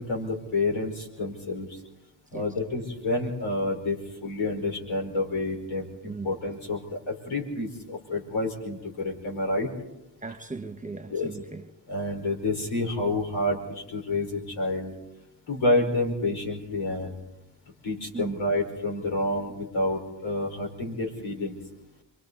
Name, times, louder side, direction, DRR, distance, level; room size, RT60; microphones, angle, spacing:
voice 1, 0.0-1.8 2.3-9.7 11.1-11.3 11.9-14.9 15.5-17.2 17.8-21.6, left 2 dB, 85° left, 5.1 m, -29 dB
voice 2, 6.0-6.4 10.2-11.7 18.1-18.3, right 4 dB, 15° right, 1.4 m, -38 dB
28.5 x 23.5 x 4.1 m
cardioid pair, 80°, 47 cm